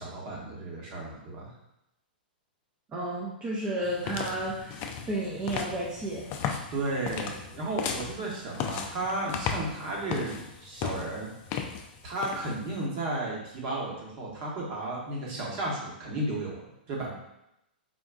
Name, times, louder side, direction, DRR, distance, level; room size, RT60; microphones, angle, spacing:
voice 1, 0.0-1.5 6.7-11.3 12.0-17.1, right 2 dB, 45° right, -3 dB, 1.1 m, -33 dB
voice 2, 2.9-6.3, right 1 dB, 20° right, -6 dB, 0.6 m, -32 dB
sound 1, 3.8-12.8, left 7 dB, 40° left, 0.3 m, -36 dB
3.8 x 2.2 x 2.3 m, 0.83 s
hypercardioid pair, 110°, 5 cm